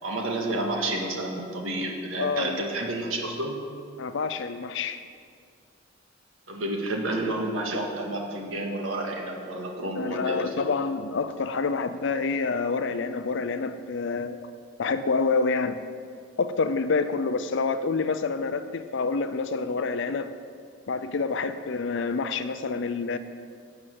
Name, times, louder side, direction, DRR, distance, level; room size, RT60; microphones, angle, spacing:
voice 1, 0.0-3.6 6.5-10.6, right 1 dB, 90° right, 1 dB, 1.9 m, -30 dB
voice 2, 2.2-2.6 4.0-5.0 10.0-14.4 14.8-15.8 16.4-20.3 20.9-23.2, left 4 dB, 65° left, 10 dB, 0.5 m, -27 dB
12.5 x 7.7 x 7.7 m, 2.2 s
head